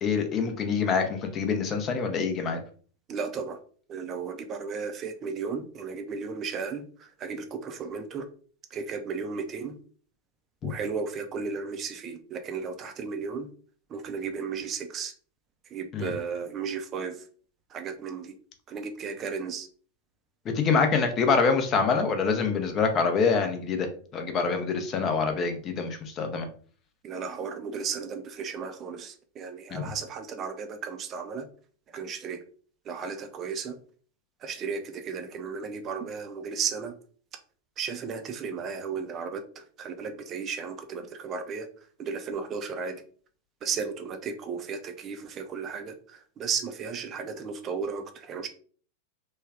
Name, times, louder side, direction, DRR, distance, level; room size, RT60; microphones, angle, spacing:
voice 1, 0.0-2.6 10.6-10.7 15.9-16.1 20.4-23.9 24.1-26.5 29.7-29.9, left 5 dB, 30° left, 5 dB, 0.7 m, -25 dB
voice 2, 3.1-3.6 3.9-8.3 8.7-9.8 10.6-13.5 13.9-15.1 15.7-17.3 17.7-18.3 18.7-19.7 27.0-31.5 31.9-32.4 32.8-33.8 34.4-37.0 37.8-41.7 42.0-43.0 43.6-48.5, right 5 dB, 30° right, 6 dB, 0.5 m, -34 dB
3.2 x 2.3 x 3.4 m, 0.44 s
figure-of-eight pair, 90°, 0 cm